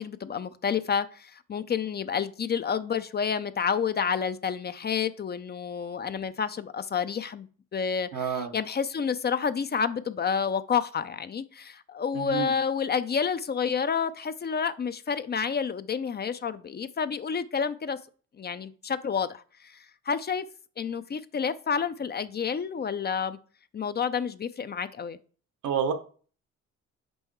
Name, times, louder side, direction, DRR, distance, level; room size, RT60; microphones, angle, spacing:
voice 1, 0.0-18.0 18.4-20.4 20.8-23.4 23.7-25.2, left 6 dB, 35° left, 0.5 m, -29 dB
voice 2, 8.1-8.5 12.1-12.5 25.6-25.9, right 7 dB, 85° right, 1.3 m, -28 dB
5.4 x 5.4 x 4.6 m
cardioid pair, 90°, 30 cm